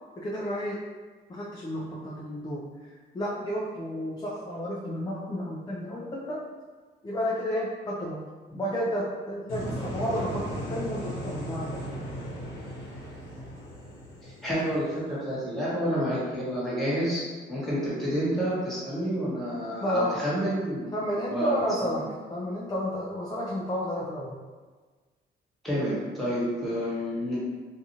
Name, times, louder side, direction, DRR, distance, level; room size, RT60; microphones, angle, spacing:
voice 1, 0.2-0.8 1.3-6.5 7.0-8.3 8.5-11.8 19.8-20.3 20.9-24.4, equal, 20° left, -4 dB, 0.4 m, -31 dB
sound 1, 9.5-15.4, equal, 85° left, 1.0 m, -37 dB
voice 2, 14.2-17.2 17.5-20.9 21.3-21.9 25.6-27.4, equal, ahead, -9 dB, 1.3 m, -29 dB
2.6 x 2.4 x 2.8 m, 1.4 s
cardioid pair, 90°, 20 cm